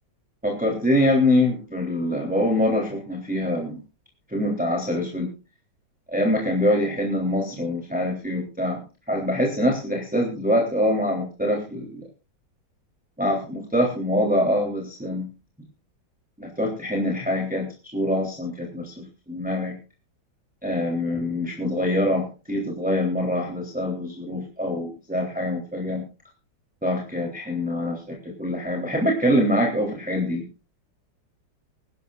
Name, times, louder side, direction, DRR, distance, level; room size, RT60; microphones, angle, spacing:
voice 1, 0.4-3.8 4.3-5.3 6.1-8.8 9.1-12.0 13.2-15.3 16.4-19.8 20.6-26.0 26.8-30.4, left 1 dB, 5° right, -2 dB, 3.3 m, -24 dB
23.5 x 12.0 x 2.5 m, 0.33 s
omnidirectional pair, 2.0 m